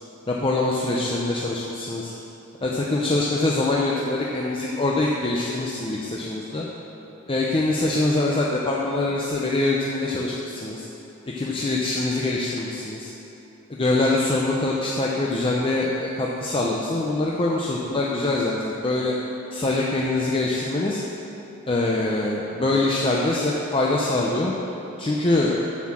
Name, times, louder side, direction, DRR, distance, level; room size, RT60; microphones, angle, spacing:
voice 1, 0.3-2.1 2.6-6.7 7.3-10.9 11.3-13.1 13.7-19.1 19.5-21.0 21.7-24.5 25.0-25.7, left 2 dB, 25° left, -3 dB, 0.6 m, -24 dB
7.3 x 6.6 x 7.3 m, 3.0 s
head